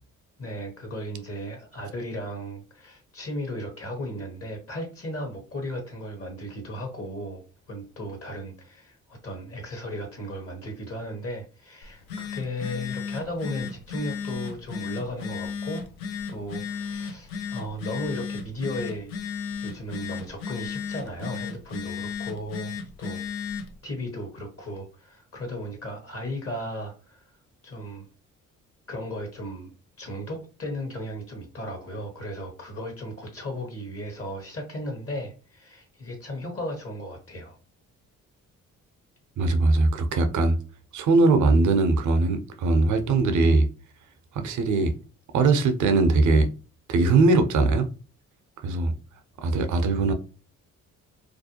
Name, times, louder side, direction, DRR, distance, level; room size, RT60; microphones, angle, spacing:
voice 1, 0.4-15.9 16.3-19.1 19.6-23.2 23.8-27.3 27.6-28.0 28.9-37.6, left 1 dB, 35° left, 1.1 m, -35 dB
Telephone, 11.8-23.8, left 6 dB, 85° left, 0.5 m, -35 dB
voice 2, 39.4-40.6 40.9-43.7 44.3-44.9 45.3-46.5 46.9-47.9 48.6-48.9 49.4-50.1, right 3 dB, 45° right, 0.6 m, -20 dB
2.5 x 2.1 x 2.7 m
hypercardioid pair, 45°, 40 cm